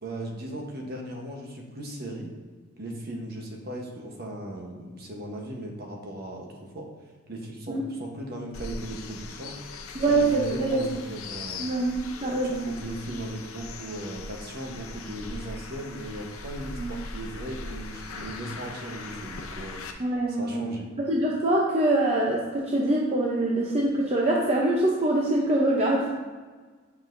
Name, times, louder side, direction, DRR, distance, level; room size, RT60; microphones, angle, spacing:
voice 1, 0.0-2.3 2.8-6.9 7.3-9.5 10.1-11.7 12.2-19.8 20.3-20.9, right 1 dB, 50° right, 0 dB, 1.0 m, -37 dB
sound 1, 8.5-19.9, left 3 dB, 85° left, 0.6 m, -40 dB
voice 2, 9.9-10.9 11.6-12.7 16.8-16.9 20.0-20.7 21.0-26.1, right 2 dB, 30° right, -3 dB, 0.6 m, -24 dB
7.9 x 5.5 x 2.6 m, 1.4 s
head